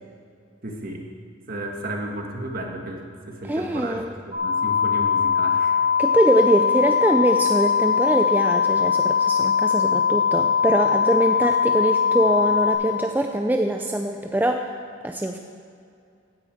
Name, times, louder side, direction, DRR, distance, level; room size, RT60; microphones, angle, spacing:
voice 1, 0.6-1.0 1.5-5.9, right 1 dB, 45° right, 1 dB, 1.6 m, -33 dB
voice 2, 3.5-4.1 6.0-14.7 15.0-15.4, right 1 dB, 10° right, 4 dB, 0.4 m, -23 dB
sound 1, 4.3-12.7, left 6 dB, 30° right, 2.8 m, -21 dB
16.5 x 9.6 x 4.6 m, 2.4 s
head